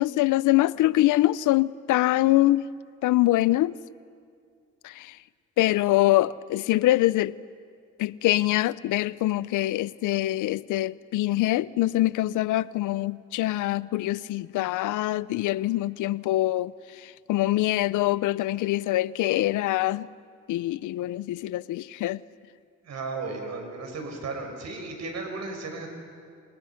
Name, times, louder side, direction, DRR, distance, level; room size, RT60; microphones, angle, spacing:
voice 1, 0.0-2.7 3.0-3.8 4.8-5.2 5.6-7.4 8.0-20.1 20.5-22.2, left 16 dB, 80° left, 0.6 m, -24 dB
voice 2, 22.8-25.9, right 3 dB, 60° right, 5.7 m, -35 dB
27.5 x 27.0 x 5.8 m
cardioid pair, 90°, 30 cm